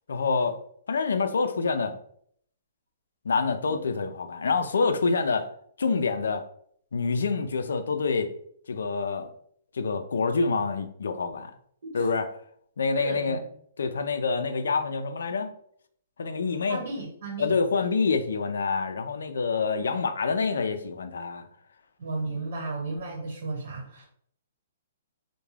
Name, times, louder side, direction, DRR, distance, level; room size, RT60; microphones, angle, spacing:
voice 1, 0.1-0.6 0.9-2.0 3.2-5.5 5.8-6.4 6.9-8.3 8.7-9.3 9.7-11.5 11.9-12.3 12.8-13.4 13.8-15.5 16.2-16.8 17.4-21.5, left 4 dB, 90° left, 0.3 m, -26 dB
voice 2, 13.0-13.4 16.7-17.6 22.0-24.0, right 3 dB, 65° right, 1.1 m, -34 dB
2.3 x 2.1 x 3.2 m
hypercardioid pair, 155°, 0 cm